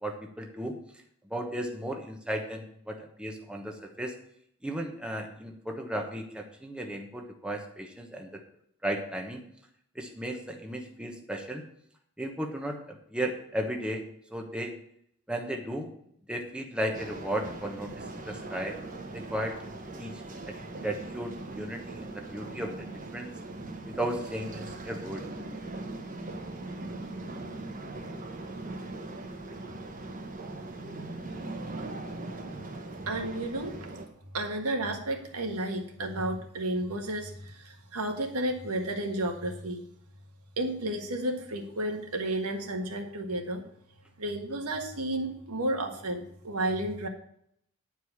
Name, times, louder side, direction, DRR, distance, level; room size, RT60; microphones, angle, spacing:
voice 1, 0.0-0.8 1.2-4.1 4.6-8.4 8.8-9.4 9.9-11.6 12.2-14.0 14.3-14.7 15.3-15.9 16.3-18.8 19.1-19.6 20.0-20.5 20.8-22.9 23.1-23.3 23.8-25.3, right 1 dB, 5° right, 2 dB, 1.0 m, -35 dB
sound 1, 16.9-34.1, right 2 dB, 35° right, 1.2 m, -40 dB
voice 2, 33.0-33.8 34.3-39.8 40.6-43.6 44.2-47.1, right 1 dB, 80° right, 3 dB, 1.7 m, -32 dB
9.9 x 4.8 x 7.1 m, 0.69 s
head